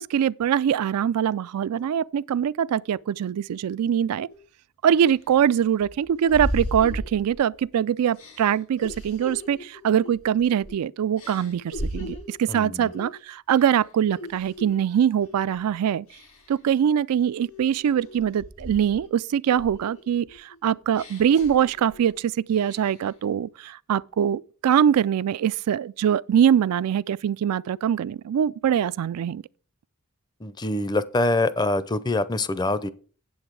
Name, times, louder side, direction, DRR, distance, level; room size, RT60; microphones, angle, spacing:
voice 1, 0.0-4.3 4.8-16.1 16.5-29.4, right 9 dB, 85° right, 0.3 m, -23 dB
sound 1, 4.3-4.4 4.9-7.6 8.1-10.8 11.2-12.4 12.9-13.2 13.5-14.8 15.2-15.6 16.1-16.7 17.2-19.1 19.5-22.1 22.5-23.1, equal, 85° left, 6.3 m, -37 dB
voice 2, 30.4-32.9, left 2 dB, 20° left, 0.5 m, -24 dB
8.8 x 8.0 x 4.6 m
head